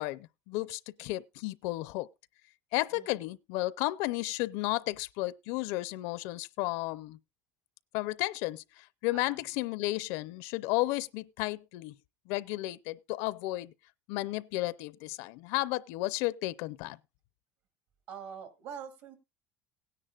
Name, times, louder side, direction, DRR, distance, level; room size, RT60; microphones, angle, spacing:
voice 1, 0.0-2.1 2.7-7.2 7.9-12.0 12.3-13.7 14.1-17.0, left 19 dB, 75° left, 0.5 m, -33 dB
voice 2, 2.9-3.2 9.1-9.4 18.1-19.2, right 7 dB, 60° right, 2.3 m, -45 dB
17.5 x 10.0 x 2.3 m
cardioid pair, 165°, 5 cm